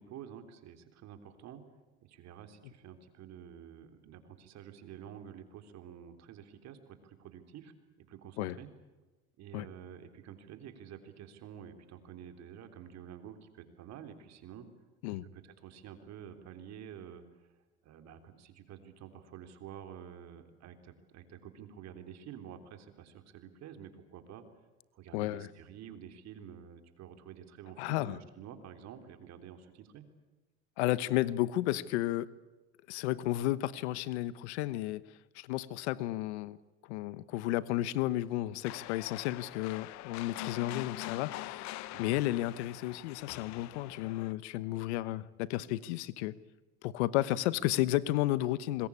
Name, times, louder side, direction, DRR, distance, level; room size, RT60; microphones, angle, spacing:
voice 1, 0.0-1.6 2.0-8.7 9.4-14.7 15.3-17.2 17.8-24.4 24.9-30.1 41.9-42.1, right 9 dB, 55° right, 7 dB, 3.6 m, -49 dB
voice 2, 25.1-25.5 27.8-28.2 30.8-32.3 32.9-35.0 35.3-36.6 36.8-46.4 46.8-48.9, left 15 dB, 90° left, 17 dB, 1.1 m, -32 dB
sound 1, 38.6-44.3, left 17 dB, 55° left, 0.9 m, -44 dB
26.5 x 21.5 x 8.5 m, 1.2 s
supercardioid pair, 110°, 32 cm